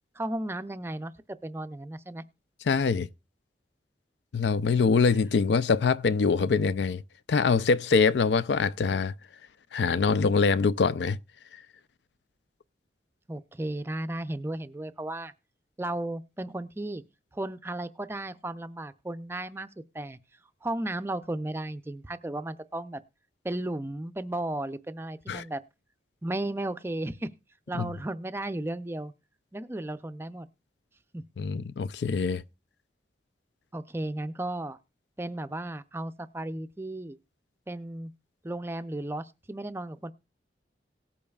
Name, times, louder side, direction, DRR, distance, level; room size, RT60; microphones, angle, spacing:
voice 1, 0.2-1.1 1.4-2.2 13.3-15.3 15.8-17.0 17.3-19.7 19.9-20.2 20.6-23.0 23.4-25.6 26.2-27.3 27.7-29.1 29.5-30.5 31.1-31.2 33.7-34.8 35.2-37.2 37.7-38.1 38.4-40.1, right 1 dB, 15° right, 0.4 m, -34 dB
voice 2, 2.6-3.1 4.3-7.0 7.3-9.1 9.7-11.2 25.3-25.5 27.7-27.9 31.4-32.4, left 5 dB, 75° left, 0.4 m, -24 dB
18.0 x 8.5 x 2.3 m
head